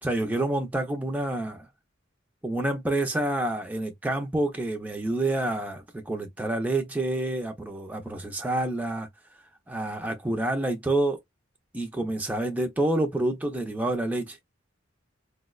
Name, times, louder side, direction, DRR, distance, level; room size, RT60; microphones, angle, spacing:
voice 1, 0.0-1.7 2.4-9.1 9.7-11.2 11.7-14.4, right 1 dB, 10° right, 0.4 m, -28 dB
4.5 x 2.1 x 2.2 m
head